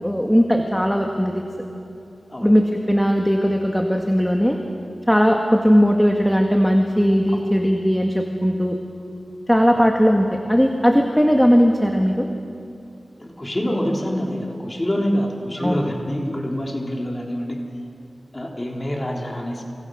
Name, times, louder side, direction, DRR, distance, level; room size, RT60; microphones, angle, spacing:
voice 1, 0.0-1.4 2.4-4.6 5.1-8.8 9.5-12.3 15.6-15.8, equal, 5° left, 2 dB, 1.9 m, -18 dB
voice 2, 13.2-17.6 18.3-19.6, equal, 25° left, -1 dB, 3.6 m, -26 dB
29.0 x 26.0 x 6.4 m, 2.6 s
wide cardioid pair, 65°, 0 cm